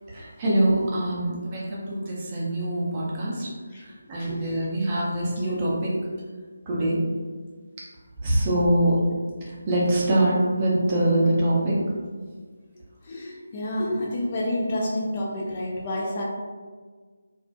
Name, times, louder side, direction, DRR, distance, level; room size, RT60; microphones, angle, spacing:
voice 1, 0.1-3.5 4.1-5.9 6.7-7.0 8.2-8.9 9.4-11.8, right 1 dB, 25° right, -5 dB, 0.5 m, -24 dB
voice 2, 3.5-3.9 4.2-4.8 5.2-5.7 8.9-9.1 13.0-16.2, left 1 dB, 30° left, -3 dB, 0.4 m, -30 dB
2.4 x 2.0 x 2.5 m, 1.5 s
figure-of-eight pair, 155°, 0 cm